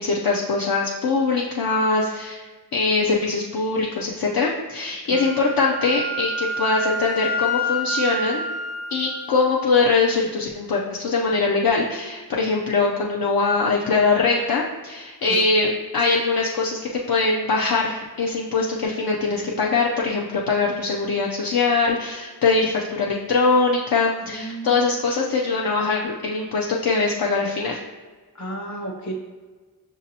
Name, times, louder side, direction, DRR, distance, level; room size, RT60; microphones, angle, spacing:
voice 1, 0.0-2.5 2.7-8.4 8.9-16.8 17.1-27.8, left 4 dB, 70° left, -2 dB, 0.5 m, -22 dB
Wind instrument woodwind instrument, 5.1-9.3, left 1 dB, 85° left, 1.4 m, -28 dB
voice 2, 24.3-24.8 28.3-29.1, right 1 dB, 45° left, 1 dB, 0.9 m, -33 dB
5.9 x 2.7 x 2.7 m, 1.4 s
wide cardioid pair, 60°, 39 cm